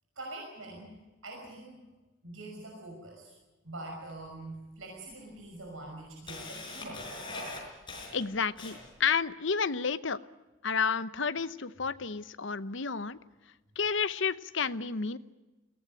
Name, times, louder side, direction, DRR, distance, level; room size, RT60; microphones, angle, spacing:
voice 1, 0.2-1.0 1.2-1.8 2.2-3.4 3.6-7.1, right 2 dB, 75° right, 0 dB, 5.7 m, -44 dB
Camera, 4.1-4.2 5.1-5.2 5.6-9.1, left 2 dB, 25° left, 6.0 m, -42 dB
voice 2, 8.1-10.2 10.6-13.2 13.8-15.2, left 5 dB, 60° left, 15 dB, 0.9 m, -31 dB
22.0 x 18.0 x 9.2 m, 1.2 s
head